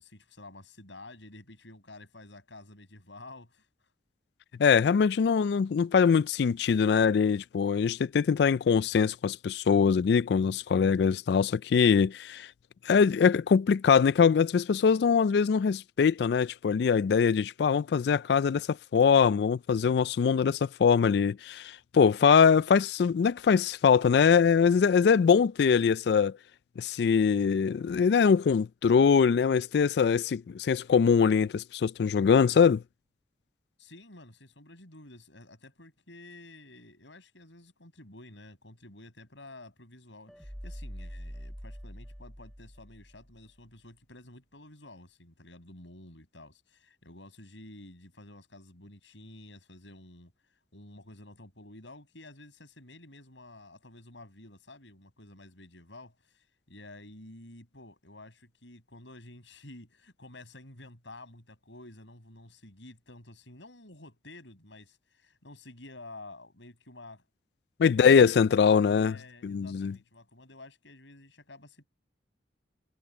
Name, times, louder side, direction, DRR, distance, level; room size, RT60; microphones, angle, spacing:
voice 1, 0.0-3.9 33.8-50.3 50.7-67.2 67.8-68.5 69.0-71.9, left 2 dB, 80° left, 6.4 m, -50 dB
voice 2, 4.6-12.5 12.9-26.3 26.8-32.8 67.8-69.2 69.4-69.9, left 6 dB, 65° left, 0.3 m, -23 dB
sound 1, 40.3-43.5, equal, ahead, 6.0 m, -44 dB
head